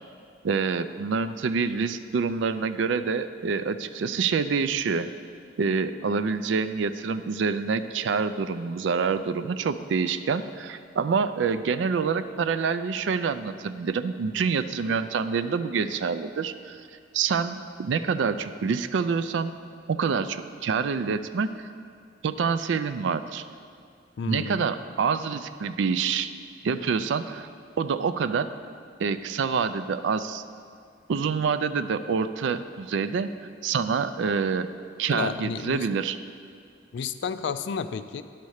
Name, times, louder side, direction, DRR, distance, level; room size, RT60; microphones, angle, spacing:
voice 1, 0.4-5.1 5.6-16.8 17.1-19.5 19.9-21.7 22.2-23.4 24.3-26.3 26.6-27.5 27.8-28.5 29.0-30.4 31.1-33.3 33.6-34.7 35.0-36.2, right 5 dB, 70° right, 12 dB, 0.4 m, -26 dB
voice 2, 24.2-24.6 35.1-35.9 36.9-38.2, left 6 dB, 65° left, 11 dB, 0.4 m, -31 dB
10.5 x 4.2 x 6.4 m, 2.3 s
head